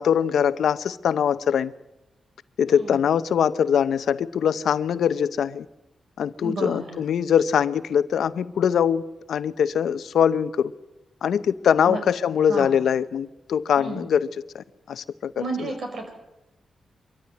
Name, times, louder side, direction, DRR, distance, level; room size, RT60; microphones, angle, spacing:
voice 1, 0.0-1.7 2.6-5.7 6.2-9.0 9.3-10.7 11.2-14.3 14.5-15.7, left 8 dB, 85° left, 0.8 m, -22 dB
voice 2, 2.7-3.1 6.4-7.1 11.9-12.0 12.5-12.7 13.8-14.1 15.4-16.1, right 2 dB, 65° right, 6.4 m, -32 dB
24.0 x 14.0 x 9.5 m
cardioid pair, 90°, 0 cm